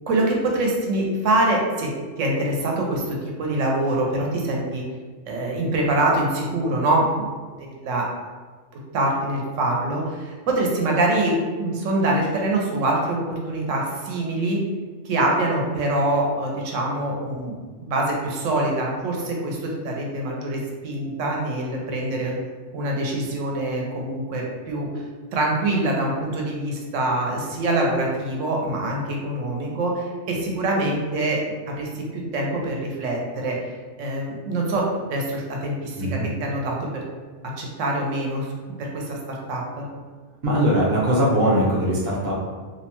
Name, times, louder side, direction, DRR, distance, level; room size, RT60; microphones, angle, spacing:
voice 1, 0.1-1.9 2.2-4.8 5.3-7.3 7.8-8.1 8.9-14.6 15.0-22.3 22.7-24.9 25.3-31.4 31.7-33.6 34.0-37.0 37.6-39.9, right 1 dB, 80° right, -1 dB, 1.0 m, -24 dB
voice 2, 35.9-36.3 40.4-42.4, equal, 55° right, -5 dB, 0.8 m, -21 dB
2.7 x 2.1 x 2.9 m, 1.5 s
omnidirectional pair, 1.3 m